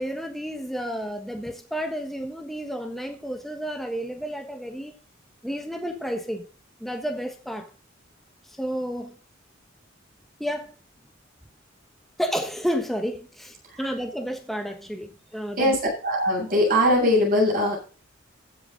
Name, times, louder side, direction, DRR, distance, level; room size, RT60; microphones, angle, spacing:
voice 1, 0.0-5.0 5.4-6.4 6.8-7.7 8.5-9.2 10.4-10.8 12.2-15.8, equal, ahead, 1.3 m, -31 dB
voice 2, 15.6-17.8, left 1 dB, 45° right, 7.2 m, -21 dB
15.0 x 7.7 x 3.9 m
head